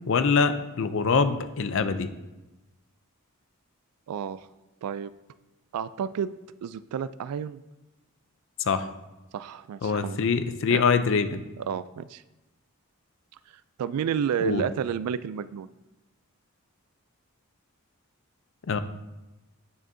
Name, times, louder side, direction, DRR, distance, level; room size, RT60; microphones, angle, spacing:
voice 1, 0.1-2.1 8.7-8.8 9.8-11.4 14.4-14.6 18.7-18.8, left 5 dB, 55° left, 11 dB, 0.4 m, -24 dB
voice 2, 4.1-4.4 4.8-5.1 5.7-6.3 6.6-7.6 9.3-10.2 10.7-10.8 11.6-12.2 13.8-15.7, right 7 dB, 90° right, 16 dB, 0.3 m, -30 dB
8.9 x 6.2 x 2.7 m, 1.1 s
head